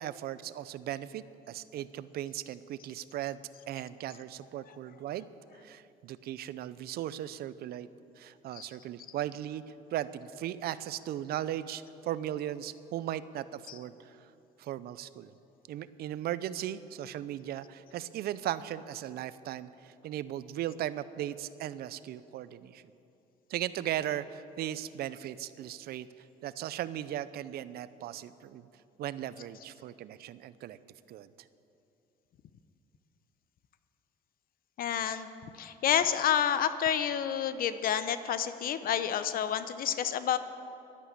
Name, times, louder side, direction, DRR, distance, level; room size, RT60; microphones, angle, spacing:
voice 1, 0.0-3.4 3.7-5.3 5.5-7.9 8.2-9.6 9.9-14.3 14.6-15.3 15.7-22.8 23.5-26.1 26.4-28.7 29.0-30.8 31.1-31.3, right 12 dB, 65° right, 15 dB, 0.6 m, -37 dB
voice 2, 34.8-35.3 35.6-40.4, left 9 dB, 60° left, 12 dB, 0.8 m, -29 dB
11.5 x 11.0 x 8.4 m, 2.7 s
cardioid pair, 110°, 17 cm